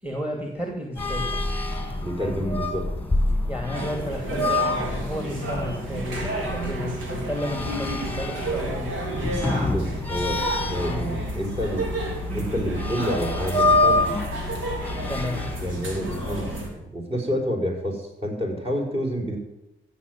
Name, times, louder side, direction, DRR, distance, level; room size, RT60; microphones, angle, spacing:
voice 1, 0.0-1.4 2.2-2.6 3.5-8.9 10.8-11.1 15.1-15.5, equal, 5° right, 3 dB, 2.7 m, -32 dB
sound 1, 1.0-16.6, left 2 dB, 10° left, 2.0 m, -28 dB
voice 2, 2.0-2.8 9.6-11.8 12.3-14.1 15.6-19.4, equal, 30° right, 1 dB, 5.5 m, -28 dB
sound 2, 3.7-16.7, right 1 dB, 80° right, 3.8 m, -31 dB
15.0 x 7.2 x 9.5 m, 0.92 s
cardioid pair, 90°, 20 cm